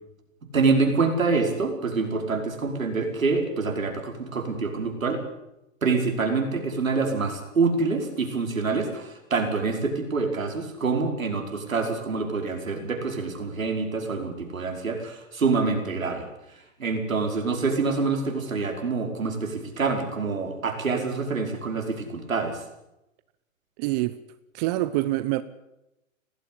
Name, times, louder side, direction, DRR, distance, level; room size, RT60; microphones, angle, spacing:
voice 1, 0.5-5.2 5.8-16.3 16.8-22.6, right 4 dB, 85° right, 5.4 m, -26 dB
voice 2, 23.8-24.1 24.5-25.4, right 17 dB, 30° right, 0.9 m, -25 dB
18.5 x 16.5 x 8.6 m
hypercardioid pair, 125°, 39 cm